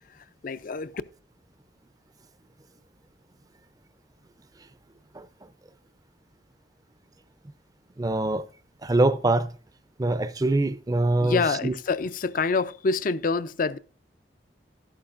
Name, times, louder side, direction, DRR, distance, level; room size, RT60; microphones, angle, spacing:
voice 1, 0.4-0.9 11.2-13.8, left 4 dB, 50° left, 0.5 m, -26 dB
voice 2, 8.0-8.4 8.8-9.5 10.0-11.7, right 2 dB, 20° right, 0.5 m, -24 dB
12.5 x 11.5 x 2.5 m
head